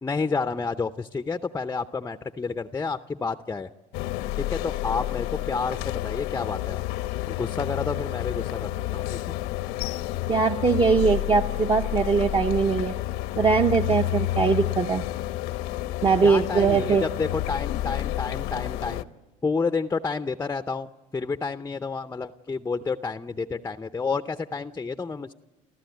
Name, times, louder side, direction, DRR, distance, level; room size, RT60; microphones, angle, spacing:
voice 1, 0.0-3.7 4.4-6.8 7.3-9.4 16.2-19.1 19.4-25.3, left 4 dB, 15° left, 10 dB, 0.6 m, -30 dB
sound 1, 3.9-19.0, left 15 dB, 80° left, 0.9 m, -30 dB
voice 2, 10.3-12.9 13.4-15.0 16.0-17.0, right 5 dB, 30° right, 5 dB, 0.9 m, -21 dB
30.0 x 14.0 x 9.3 m, 1.2 s
supercardioid pair, 105°, 17 cm